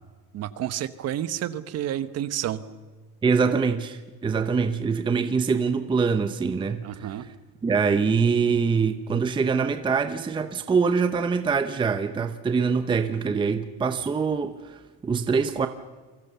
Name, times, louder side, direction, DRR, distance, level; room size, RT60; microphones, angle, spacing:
voice 1, 0.3-2.6 6.8-7.2, right 11 dB, 40° right, 1.1 m, -30 dB
voice 2, 3.2-7.3 7.6-15.7, right 5 dB, 15° right, 0.7 m, -24 dB
28.0 x 24.5 x 6.9 m
cardioid pair, 165°, 37 cm